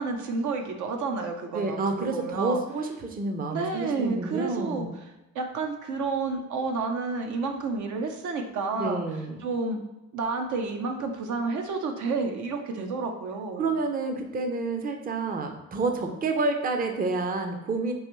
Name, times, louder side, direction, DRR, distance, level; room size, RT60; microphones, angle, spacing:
voice 1, 0.0-2.6 3.5-4.9 5.3-9.0 9.4-9.8 10.1-13.7, right 4 dB, 75° right, 4 dB, 0.6 m, -30 dB
voice 2, 1.5-4.9 8.8-9.4 13.6-17.9, right 3 dB, 30° right, 5 dB, 0.5 m, -29 dB
4.7 x 2.6 x 3.0 m, 1.0 s
cardioid pair, 90°, 30 cm